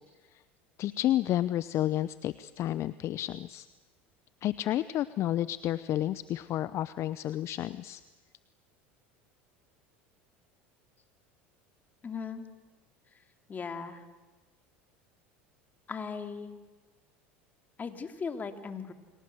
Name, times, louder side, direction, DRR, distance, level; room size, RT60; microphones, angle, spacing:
voice 1, 0.8-3.7 4.4-8.0, left 13 dB, 50° left, 15 dB, 0.8 m, -31 dB
voice 2, 12.0-12.5 13.5-14.1 15.9-16.6 17.8-18.9, left 5 dB, 30° left, 6 dB, 3.1 m, -38 dB
29.5 x 24.5 x 8.0 m, 1.3 s
hypercardioid pair, 85°, 6 cm